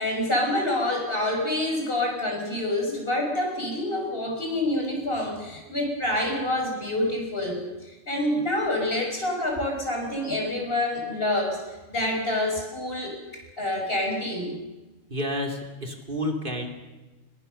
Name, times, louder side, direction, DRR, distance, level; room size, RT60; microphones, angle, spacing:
voice 1, 0.0-13.1 13.6-14.6, left 1 dB, 45° left, 1 dB, 5.8 m, -27 dB
voice 2, 15.1-16.7, left 1 dB, 40° right, 3 dB, 2.5 m, -30 dB
21.5 x 21.0 x 6.7 m, 1.1 s
omnidirectional pair, 1.3 m